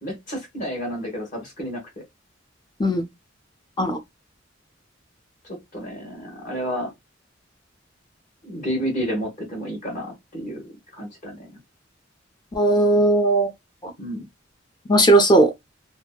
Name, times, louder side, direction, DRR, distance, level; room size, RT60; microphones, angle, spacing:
voice 1, 0.0-1.8 5.5-6.9 8.4-10.6 10.9-11.5 14.0-14.3, equal, 45° left, 1.1 m, -30 dB
voice 2, 12.5-13.5 13.8-13.9 14.9-15.5, right 2 dB, 20° left, 0.5 m, -17 dB
2.7 x 2.1 x 2.2 m
head